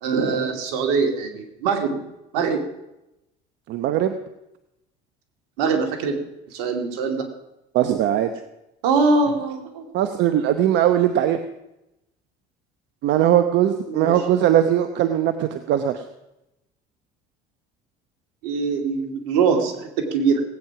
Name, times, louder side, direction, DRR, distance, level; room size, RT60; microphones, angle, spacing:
voice 1, 0.0-2.0 2.3-2.6 5.6-6.2 6.5-7.2 8.8-9.9 13.9-14.1 18.4-20.4, right 4 dB, 80° right, 4 dB, 2.5 m, -22 dB
voice 2, 3.7-4.1 7.7-8.3 9.9-11.4 13.0-16.0, right 11 dB, 65° right, 9 dB, 1.0 m, -20 dB
18.0 x 9.0 x 6.0 m, 0.90 s
supercardioid pair, 80°, 20 cm